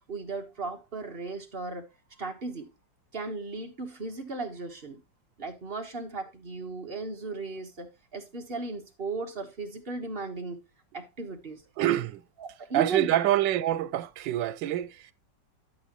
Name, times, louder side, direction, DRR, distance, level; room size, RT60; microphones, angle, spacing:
voice 1, 0.1-1.9 2.2-2.7 3.1-5.0 5.4-10.6 10.9-11.6 12.4-13.1, right 3 dB, 35° right, 1.4 m, -36 dB
voice 2, 11.8-12.2 12.7-15.1, right 13 dB, 90° right, 1.3 m, -26 dB
12.5 x 6.3 x 3.0 m
omnidirectional pair, 1.9 m